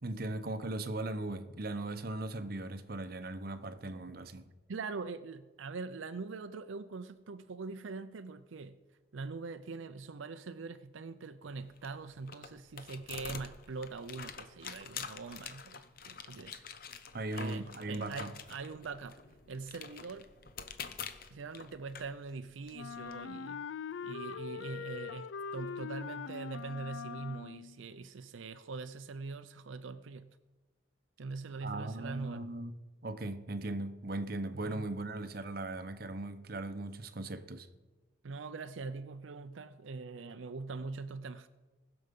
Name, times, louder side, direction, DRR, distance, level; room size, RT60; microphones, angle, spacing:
voice 1, 0.0-4.5 17.1-18.3 31.5-32.7 33.0-37.7, right 2 dB, 50° right, 0.8 m, -38 dB
voice 2, 4.7-8.8 9.1-19.2 19.5-20.3 21.3-23.7 24.0-30.4 31.2-32.5 34.5-34.9 38.2-41.5, right 4 dB, 85° right, 0.5 m, -43 dB
sound 1, 11.4-23.1, left 7 dB, 50° left, 0.8 m, -47 dB
Wind instrument woodwind instrument, 22.7-27.8, left 6 dB, 70° left, 0.4 m, -42 dB
19.5 x 6.9 x 5.4 m
head